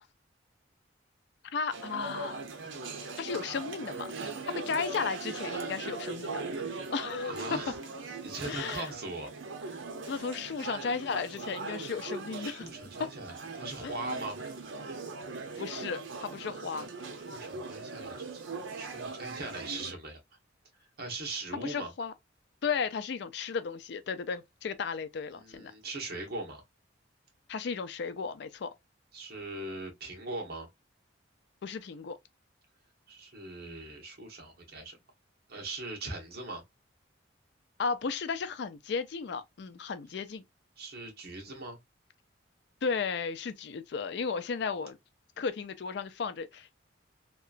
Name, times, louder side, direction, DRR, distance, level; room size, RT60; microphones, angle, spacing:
voice 1, 1.5-2.4 3.2-4.1 4.5-6.4 6.9-7.6 8.4-8.9 9.9-12.7 13.0-13.1 13.8-14.2 15.6-16.9 21.5-22.1 22.6-25.7 27.5-28.7 31.6-32.2 37.8-40.4 42.8-45.0 45.4-46.7, left 5 dB, 60° left, 0.4 m, -34 dB
sound 1, 1.7-19.9, right 3 dB, 85° right, 0.6 m, -40 dB
voice 2, 7.2-7.7 8.2-9.3 12.3-14.4 17.3-18.4 18.8-20.2 21.0-21.9 25.3-26.6 29.1-30.7 33.1-35.0 35.5-36.6 40.8-41.8, right 2 dB, 55° right, 1.0 m, -40 dB
2.9 x 2.3 x 2.4 m
head